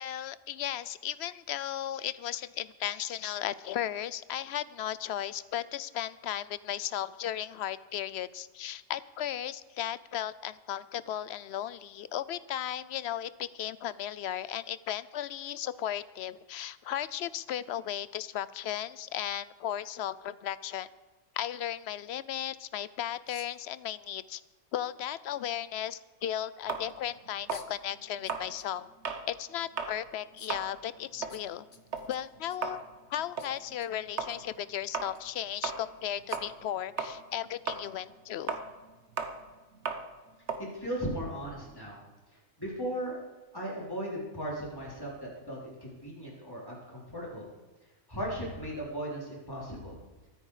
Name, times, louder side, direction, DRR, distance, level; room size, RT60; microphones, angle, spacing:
voice 1, 0.0-20.9 21.3-24.4 24.7-28.9 29.3-31.6 32.1-32.8 33.1-38.6, left 11 dB, 65° left, 17 dB, 0.8 m, -35 dB
sound 1, 23.3-23.7 25.2-25.3 27.5-27.8 28.2-28.7 29.1-29.2 30.4-30.6 31.3-32.8 33.4-33.9 34.2-34.4 35.1-35.2 36.3-36.6, left 4 dB, 35° left, 1.0 m, -53 dB
sound 2, 26.7-29.3 29.7-30.0 30.3-36.7 37.0-41.8, right 5 dB, 65° right, 1.4 m, -37 dB
voice 2, 40.6-42.0 42.6-43.2 43.5-47.4 48.1-50.0, equal, 15° left, -4 dB, 4.1 m, -37 dB
23.0 x 9.2 x 4.9 m, 1.2 s
omnidirectional pair, 1.3 m